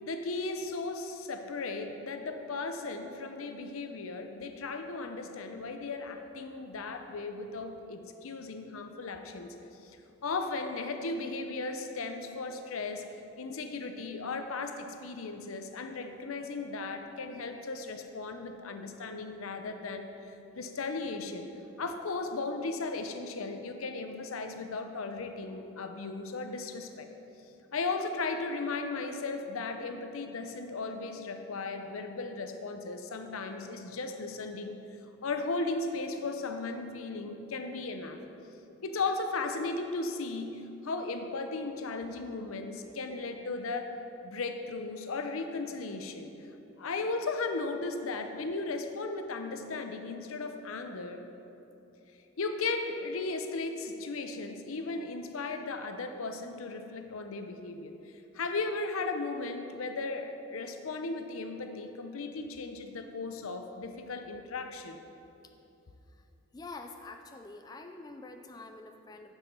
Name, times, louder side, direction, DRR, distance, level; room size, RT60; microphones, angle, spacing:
voice 1, 0.0-9.6 10.2-13.0 13.4-20.1 20.5-21.5 21.8-27.1 27.7-34.8 35.2-38.2 38.8-46.3 46.8-51.2 52.4-57.9 58.3-65.0, left 3 dB, 85° left, 6 dB, 0.7 m, -36 dB
voice 2, 66.5-69.3, left 3 dB, 20° left, 5 dB, 0.3 m, -46 dB
7.3 x 6.9 x 5.4 m, 2.9 s
head